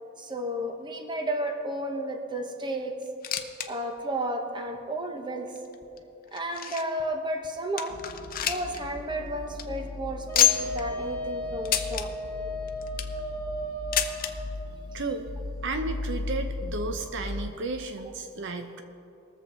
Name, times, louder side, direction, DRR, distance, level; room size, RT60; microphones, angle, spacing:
voice 1, 0.2-3.0 3.7-5.5 6.3-8.0 8.4-12.1, right 1 dB, 25° right, 4 dB, 1.0 m, -32 dB
sound 1, 3.0-3.7 4.0-4.1 4.7-4.8 5.6-7.0 7.4-7.5 7.8-8.8 9.1-9.2 9.5-9.6 10.3-10.8 11.6-12.1 12.7-13.2 13.9-14.3 15.3-15.4 15.6-15.7 16.5-16.6, left 11 dB, 45° left, 0.7 m, -27 dB
sound 2, 7.9-17.5, left 2 dB, 85° left, 0.7 m, -38 dB
Wind instrument woodwind instrument, 10.3-14.7, equal, 15° left, 1.4 m, -35 dB
voice 2, 14.9-15.3 15.6-18.8, right 3 dB, 60° right, 7 dB, 0.7 m, -33 dB
21.0 x 7.3 x 4.3 m, 2.8 s
head